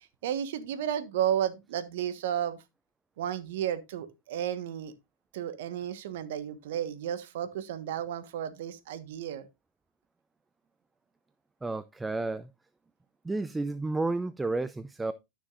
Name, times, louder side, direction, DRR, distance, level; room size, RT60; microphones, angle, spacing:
voice 1, 0.2-2.6 3.2-4.9 5.3-9.5, right 10 dB, 65° right, 1.3 m, -32 dB
voice 2, 11.6-12.5 13.3-15.1, right 3 dB, 10° right, 0.4 m, -31 dB
13.0 x 6.3 x 2.5 m
supercardioid pair, 140°, 0 cm